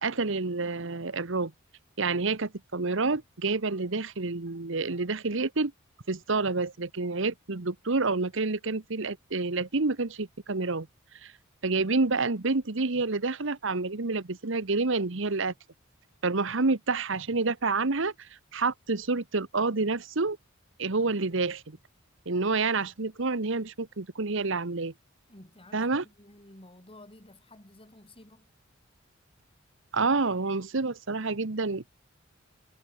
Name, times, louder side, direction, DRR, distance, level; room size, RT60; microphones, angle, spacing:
voice 1, 0.0-1.5 2.0-5.7 6.1-10.9 11.1-11.3 11.6-15.5 16.2-20.4 20.8-21.8 22.3-24.9 25.7-26.0 29.9-31.9, right 3 dB, 65° right, 1.2 m, -28 dB
voice 2, 25.3-28.5, left 1 dB, 30° left, 8.0 m, -52 dB
head